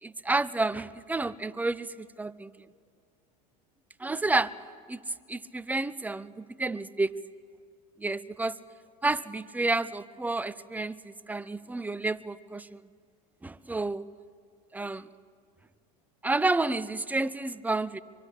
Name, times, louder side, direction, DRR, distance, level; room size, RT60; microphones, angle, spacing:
voice 1, 0.0-2.5 4.0-4.5 4.9-5.0 5.3-7.1 8.0-8.6 9.0-12.8 13.4-14.1 14.7-15.1 16.2-18.0, right 2 dB, 10° right, 15 dB, 0.7 m, -30 dB
24.0 x 24.0 x 8.4 m, 2.1 s
supercardioid pair, 105°, 20 cm